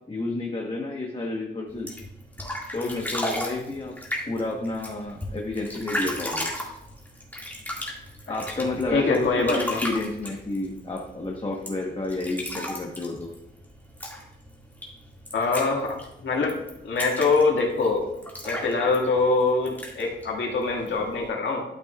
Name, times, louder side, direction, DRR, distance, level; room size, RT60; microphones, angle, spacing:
voice 1, 0.1-1.9 2.7-4.0 4.3-6.5 8.3-13.3, left 2 dB, 25° left, -1 dB, 1.1 m, -30 dB
sound 1, 1.7-21.3, left 1 dB, 10° left, 2.0 m, -36 dB
voice 2, 8.3-8.7 8.9-9.8 15.3-18.1 18.4-21.6, left 3 dB, 75° left, 0 dB, 1.9 m, -24 dB
12.0 x 6.9 x 2.4 m, 0.86 s
wide cardioid pair, 125°, 19 cm